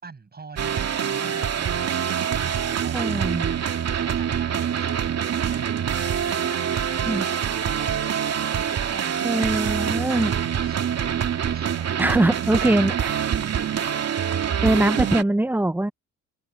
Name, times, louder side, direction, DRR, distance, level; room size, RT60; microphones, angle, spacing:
voice 1, 0.0-2.1 2.4-3.5 3.9-7.9 8.8-10.2 10.6-10.8 11.5-13.9 14.7-15.2, right 4 dB, 30° right, 6.8 m, -43 dB
sound 1, 0.6-15.2, right 8 dB, 55° right, 2.4 m, -25 dB
voice 2, 2.9-3.5 7.1-7.2 9.2-10.3 12.0-13.1 14.6-15.9, right 1 dB, 5° right, 0.8 m, -22 dB
cardioid pair, 90°, 30 cm